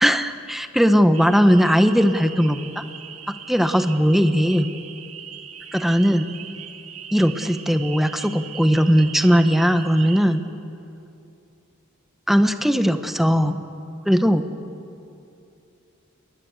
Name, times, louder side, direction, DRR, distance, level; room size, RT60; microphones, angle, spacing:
voice 1, 0.0-2.7 3.5-4.7 5.7-6.2 7.1-10.4 12.3-13.6 14.1-14.4, equal, ahead, 9 dB, 1.1 m, -18 dB
sound 1, 1.1-10.2, right 8 dB, 75° right, 2.3 m, -40 dB
28.5 x 22.0 x 8.2 m, 2.6 s
head